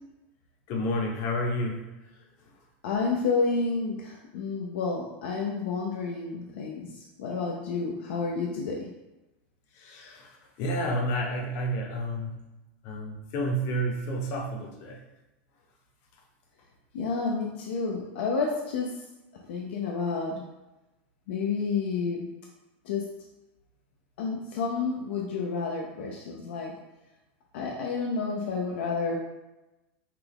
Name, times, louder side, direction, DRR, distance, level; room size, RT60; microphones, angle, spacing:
voice 1, 0.7-1.8 9.8-10.3 10.6-12.3 12.8-15.0, equal, 45° left, 1 dB, 0.8 m, -30 dB
voice 2, 2.8-8.9 16.9-19.1 19.5-20.4 21.3-22.3 22.8-23.1 24.2-26.7 27.5-29.1, left 4 dB, 75° left, -1 dB, 0.6 m, -30 dB
5.8 x 2.3 x 3.4 m, 1.0 s
supercardioid pair, 160°, 6 cm